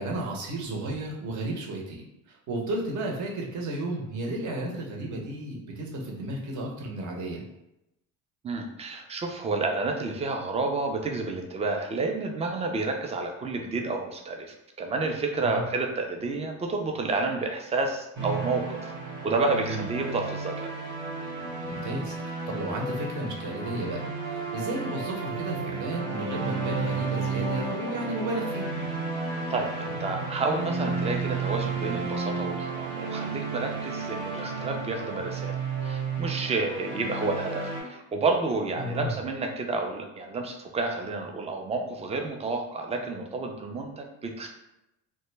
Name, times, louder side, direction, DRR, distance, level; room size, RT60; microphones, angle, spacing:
voice 1, 0.0-7.4 15.4-15.6 19.7-19.9 21.6-28.7 38.8-39.1, right 1 dB, 50° right, -1 dB, 0.8 m, -33 dB
voice 2, 8.4-14.5 14.8-18.9 19.2-20.7 29.5-35.6 35.8-44.5, right 3 dB, 15° right, 3 dB, 0.4 m, -30 dB
sound 1, 18.1-37.8, right 4 dB, 90° right, 1.3 m, -32 dB
2.2 x 2.0 x 3.2 m, 0.88 s
supercardioid pair, 85°, 40 cm